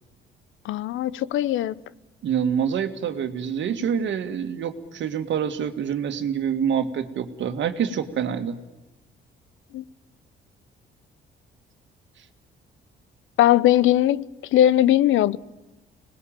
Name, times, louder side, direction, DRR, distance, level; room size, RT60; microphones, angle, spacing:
voice 1, 0.6-1.7 9.7-9.8 13.4-14.3 14.5-15.4, left 12 dB, 80° left, 0.8 m, -19 dB
voice 2, 2.2-8.6, right 8 dB, 70° right, 2.1 m, -26 dB
26.0 x 20.0 x 9.0 m
cardioid pair, 90°, 20 cm